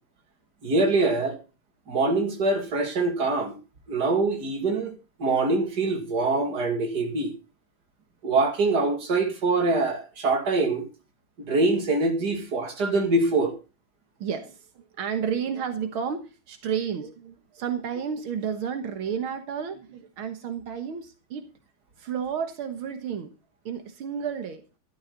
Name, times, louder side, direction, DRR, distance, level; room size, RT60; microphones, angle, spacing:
voice 1, 0.6-1.4 1.9-3.5 3.9-4.9 5.2-7.3 8.2-10.8 11.5-13.5, right 3 dB, 50° right, 3.0 m, -24 dB
voice 2, 14.2-21.5 22.0-23.3 23.7-24.6, right 7 dB, 85° right, 2.2 m, -31 dB
13.0 x 12.5 x 4.0 m
omnidirectional pair, 2.2 m